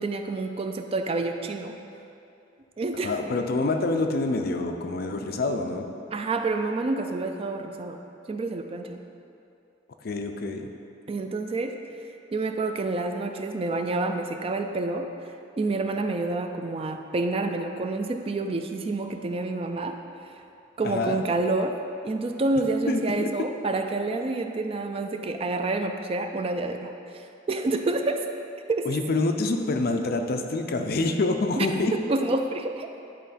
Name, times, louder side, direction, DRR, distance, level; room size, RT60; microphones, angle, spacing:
voice 1, 0.0-1.8 2.8-3.2 6.1-8.0 8.3-9.0 11.1-11.8 12.3-15.1 15.6-20.0 20.8-21.8 22.0-28.2 28.7-29.0 31.6-32.9, right 2 dB, 30° right, 6 dB, 0.3 m, -28 dB
voice 2, 3.0-5.9 10.0-10.7 20.8-21.2 22.9-23.0 28.8-31.9, left 2 dB, 55° left, 5 dB, 0.5 m, -26 dB
10.0 x 3.7 x 4.1 m, 2.7 s
head